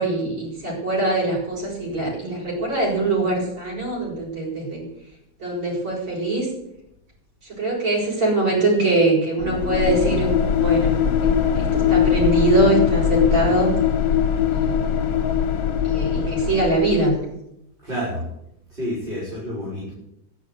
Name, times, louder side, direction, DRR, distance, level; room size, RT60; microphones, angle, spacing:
voice 1, 0.0-4.8 5.4-6.5 7.6-10.3 10.6-10.9 11.2-11.3 11.7-13.7 14.5-14.8 15.8-17.1, right 2 dB, 75° right, -5 dB, 8.1 m, -22 dB
sound 1, 9.4-17.2, left 8 dB, 70° left, 1.8 m, -21 dB
voice 2, 17.8-18.2 18.7-19.9, equal, 25° right, -6 dB, 6.7 m, -29 dB
13.0 x 10.5 x 9.9 m, 0.80 s
omnidirectional pair, 2.1 m